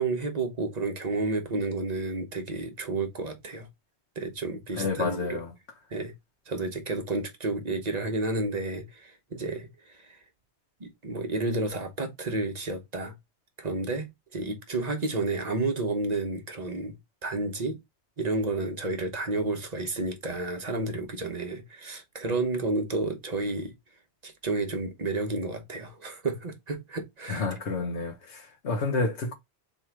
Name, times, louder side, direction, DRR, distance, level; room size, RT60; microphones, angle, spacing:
voice 1, 0.0-3.7 4.2-5.4 5.9-6.1 6.5-10.2 10.8-13.1 13.6-17.0 17.2-17.8 18.2-23.7 24.2-27.5, right 3 dB, 40° right, 1.0 m, -31 dB
voice 2, 4.8-5.5 27.3-29.3, left 3 dB, 85° left, 1.3 m, -29 dB
3.6 x 3.1 x 4.4 m
omnidirectional pair, 1.1 m